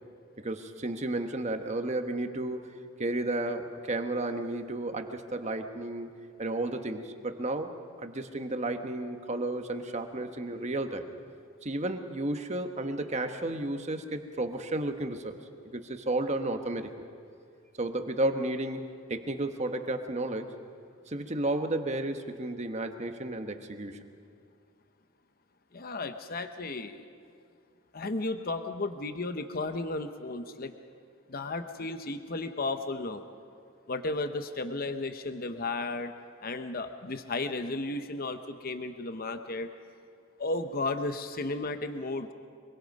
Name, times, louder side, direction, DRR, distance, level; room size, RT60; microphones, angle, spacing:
voice 1, 0.4-2.7 3.0-6.1 6.4-7.7 8.0-11.0 11.6-15.4 15.7-16.9 17.8-18.8 19.1-20.5 21.1-24.0, right 2 dB, 30° right, 6 dB, 1.2 m, -32 dB
voice 2, 25.7-27.0 27.9-30.7 31.3-33.2 33.9-36.1 36.4-39.7 40.4-42.3, left 2 dB, 45° left, 8 dB, 0.8 m, -34 dB
25.0 x 23.0 x 5.3 m, 2.2 s
head